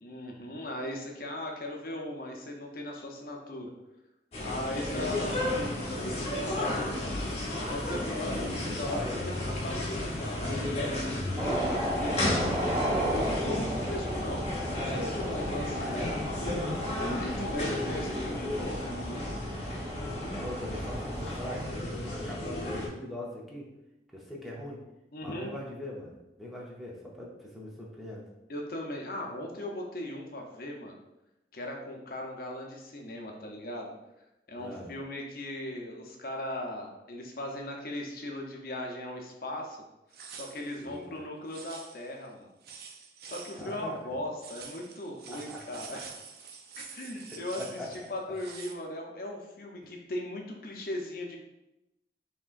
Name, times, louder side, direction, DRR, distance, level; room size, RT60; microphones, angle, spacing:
voice 1, 0.0-3.7 4.4-6.8 7.5-12.3 13.1-19.3 25.1-25.5 28.5-31.0 31.5-33.9 34.5-39.8 40.3-42.5 43.2-46.0 46.5-51.4, left 1 dB, 55° left, 1 dB, 0.7 m, -38 dB
sound 1, 4.3-22.9, left 1 dB, 35° left, 1.0 m, -33 dB
voice 2, 4.7-5.5 8.0-9.2 15.7-16.2 17.3-18.0 20.2-23.7 24.1-24.8 25.2-28.2 34.5-34.9 40.8-41.1 43.6-44.0 45.3-45.6 47.1-47.9, left 1 dB, ahead, -5 dB, 0.7 m, -42 dB
sound 2, 11.4-21.7, equal, 30° right, 1.1 m, -35 dB
sound 3, 40.1-40.9 41.5-42.3 42.6-43.8 44.4-48.7, right 6 dB, 60° right, 0.5 m, -47 dB
5.8 x 2.9 x 2.5 m, 0.93 s
head